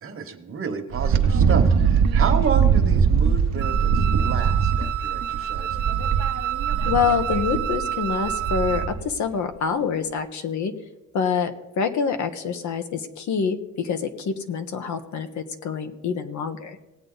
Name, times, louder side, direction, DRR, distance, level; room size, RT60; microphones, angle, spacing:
voice 1, 0.0-5.9, right 5 dB, 45° right, 7 dB, 1.3 m, -31 dB
Wind, 0.9-9.1, right 6 dB, 65° right, 0.9 m, -21 dB
Wind instrument woodwind instrument, 3.6-8.9, right 11 dB, 80° right, 0.6 m, -29 dB
voice 2, 6.8-10.7 11.1-16.8, left 6 dB, 70° left, 7 dB, 1.2 m, -26 dB
18.5 x 8.0 x 3.9 m, 1.0 s
cardioid pair, 90°, 30 cm